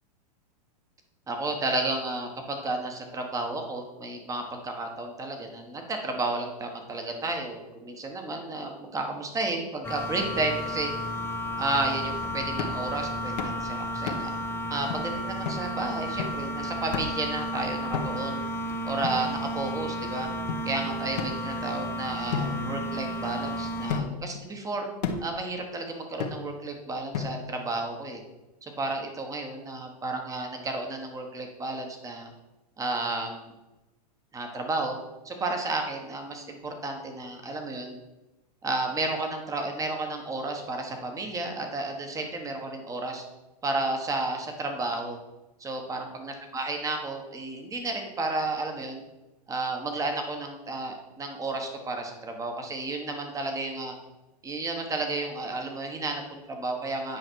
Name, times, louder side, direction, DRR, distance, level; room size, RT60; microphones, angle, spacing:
voice 1, 1.3-10.9 11.6-14.3 14.7-18.4 18.8-20.3 20.6-24.9 25.2-28.2 28.8-32.3 32.8-33.5 34.3-35.0 35.2-38.0 38.6-43.2 43.6-45.2 45.6-49.0 49.5-53.9 54.4-57.2, right 2 dB, 15° right, 4 dB, 1.4 m, -32 dB
sound 1, 9.8-24.0, equal, 10° left, 0.7 m, -33 dB
sound 2, 12.6-12.9 13.4-13.6 14.1-14.4 14.9-15.0 15.5-15.7 16.2-16.5 16.9-17.3 17.9-18.4 19.0-19.8 20.5-20.6 21.2-21.9 22.3-23.4 23.9-24.3 25.0-25.4 26.2-26.7 27.1-27.7, left 6 dB, 75° left, 1.3 m, -34 dB
9.7 x 5.1 x 4.6 m, 1.0 s
hypercardioid pair, 130°, 21 cm